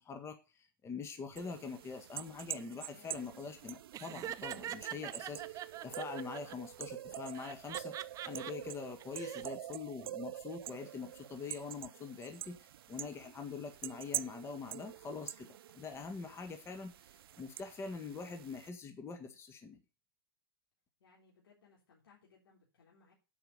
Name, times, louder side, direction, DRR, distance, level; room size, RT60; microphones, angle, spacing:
voice 1, 0.0-19.8, left 5 dB, 20° left, 6 dB, 1.6 m, -44 dB
sound 1, 1.4-18.7, right 12 dB, 75° right, 0.4 m, -46 dB
voice 2, 2.7-3.8 21.0-23.1, left 5 dB, 80° left, -3 dB, 3.6 m, -65 dB
Laughter, 3.9-6.5 7.3-8.5 9.0-9.4, right 12 dB, 25° right, 0.5 m, -43 dB
8.2 x 5.7 x 6.7 m, 0.29 s
hypercardioid pair, 120°, 12 cm